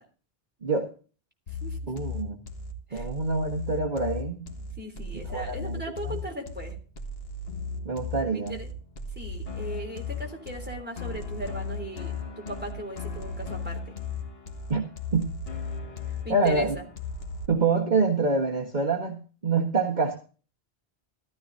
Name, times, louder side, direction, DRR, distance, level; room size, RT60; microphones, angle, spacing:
sound 1, 1.5-17.5, left 4 dB, 70° left, 1.8 m, -36 dB
voice 1, 1.9-2.4 2.9-4.5 5.1-6.2 7.9-8.6 14.7-15.3 16.3-16.8 17.5-20.2, right 3 dB, 45° right, -1 dB, 1.7 m, -26 dB
voice 2, 4.8-6.8 8.3-8.7 9.2-13.9 16.2-16.9, equal, 10° right, 1 dB, 3.4 m, -37 dB
15.0 x 13.0 x 2.7 m, 0.38 s
omnidirectional pair, 1.1 m